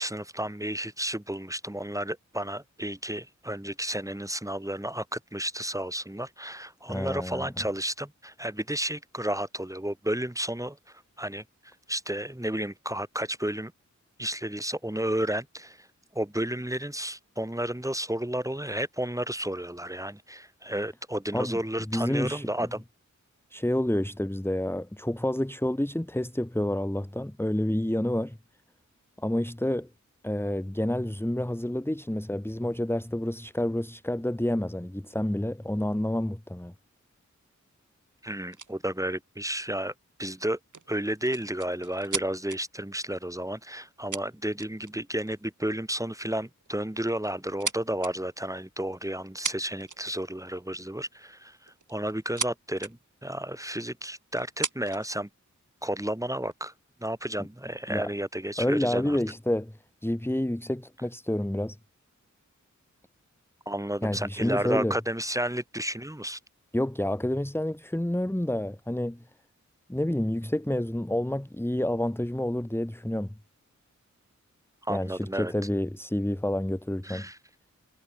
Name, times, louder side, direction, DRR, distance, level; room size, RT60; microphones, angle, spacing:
voice 1, 0.0-13.7 14.2-15.9 16.1-22.8 38.2-39.9 40.2-40.6 40.9-55.3 55.8-56.7 57.0-59.2 63.7-66.4 74.8-75.5 77.0-77.4, right 1 dB, 10° right, 4.3 m, -32 dB
voice 2, 6.9-7.5 21.3-21.6 21.9-22.7 23.5-28.4 29.2-29.9 30.2-36.7 57.4-57.5 57.9-58.1 58.6-61.8 64.0-64.9 66.7-69.2 69.9-73.3 74.9-77.3, left 1 dB, 5° left, 1.8 m, -29 dB
sound 1, 38.5-38.7 40.7-42.6 43.7-43.8 44.1-44.9 45.3-45.5 46.5-46.7 47.1-48.1 49.2-49.3 49.4-50.2 51.7-52.5 52.8-52.9 53.6-53.7 54.4-55.1 55.8-56.5, right 4 dB, 80° right, 5.6 m, -35 dB
wide cardioid pair, 65°, 30 cm